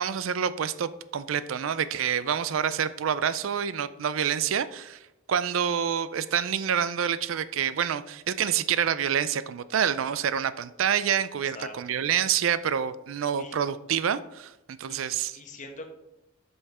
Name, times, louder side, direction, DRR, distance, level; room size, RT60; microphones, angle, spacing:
voice 1, 0.0-5.0 5.3-15.3, right 8 dB, 85° right, 15 dB, 0.4 m, -27 dB
voice 2, 11.4-12.0 13.4-13.6 14.9-15.9, left 2 dB, 40° left, 5 dB, 1.1 m, -44 dB
8.2 x 5.6 x 4.3 m, 0.90 s
head